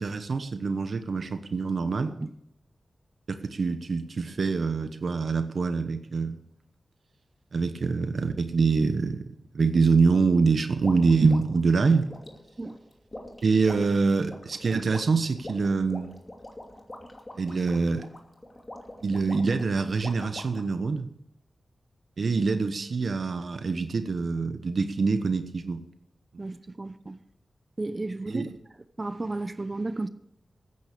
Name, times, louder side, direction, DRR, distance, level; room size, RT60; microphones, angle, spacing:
voice 1, 0.0-2.1 3.3-6.4 7.5-9.2 9.5-12.1 13.4-16.1 17.4-18.1 19.0-21.1 22.2-25.8 28.3-28.5, right 4 dB, 70° right, 9 dB, 1.1 m, -25 dB
voice 2, 2.0-2.3 12.6-12.8 26.4-27.2 27.8-28.4 29.0-30.1, right 2 dB, 35° right, 13 dB, 0.8 m, -33 dB
sound 1, 10.8-20.7, left 1 dB, 25° left, 2.6 m, -44 dB
14.5 x 9.6 x 6.8 m, 0.80 s
wide cardioid pair, 70°, 0 cm